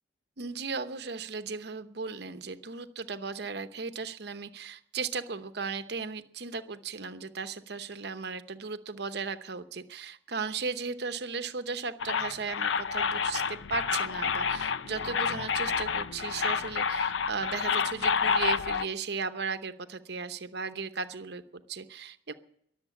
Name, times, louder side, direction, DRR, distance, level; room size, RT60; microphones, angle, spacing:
voice 1, 0.4-22.3, right 5 dB, 60° right, 10 dB, 0.9 m, -36 dB
sound 1, 12.0-18.8, left 6 dB, 80° left, 0.5 m, -29 dB
22.0 x 7.4 x 8.5 m, 0.73 s
head